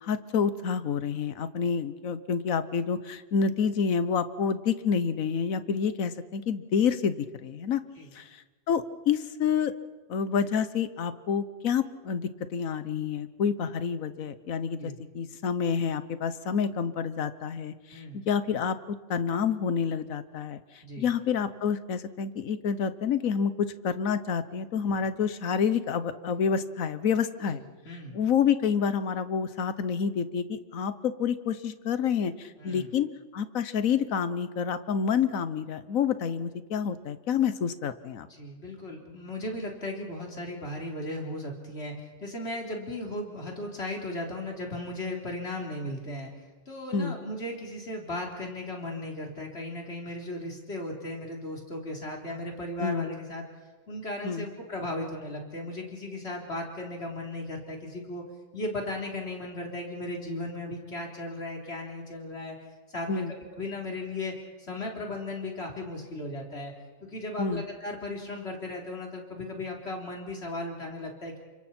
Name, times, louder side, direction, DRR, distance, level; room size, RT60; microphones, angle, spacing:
voice 1, 0.0-7.8 8.1-8.3 8.7-9.7 10.1-20.6 21.0-27.6 28.1-33.1 33.3-38.3 46.9-47.2 52.8-53.0 54.2-54.5 63.1-63.3 67.4-67.6, left 6 dB, 80° left, 12 dB, 1.4 m, -28 dB
voice 2, 17.9-18.2 20.8-21.1 27.5-28.2 32.6-32.9 38.3-46.3 46.7-53.4 53.9-58.2 58.5-62.6 62.9-63.2 63.5-64.3 64.6-66.7 67.0-71.4, left 1 dB, 50° left, 0 dB, 3.9 m, -36 dB
30.0 x 26.0 x 4.4 m, 1.3 s
omnidirectional pair, 1.4 m